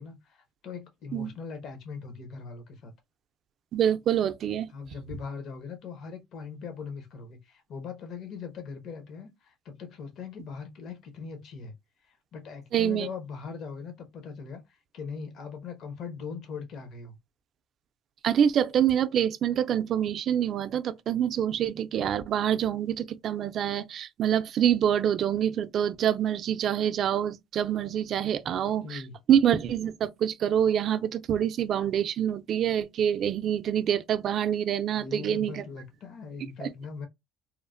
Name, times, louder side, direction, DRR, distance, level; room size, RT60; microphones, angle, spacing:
voice 1, 0.0-2.9 4.7-11.7 12.0-17.2 28.4-29.1 34.9-37.1, left 5 dB, 55° left, 0.7 m, -40 dB
voice 2, 3.7-4.7 12.7-13.1 18.2-29.0 29.3-35.6 36.6-36.7, right 9 dB, 50° right, 0.3 m, -26 dB
3.0 x 2.0 x 2.4 m
cardioid pair, 120°, 0 cm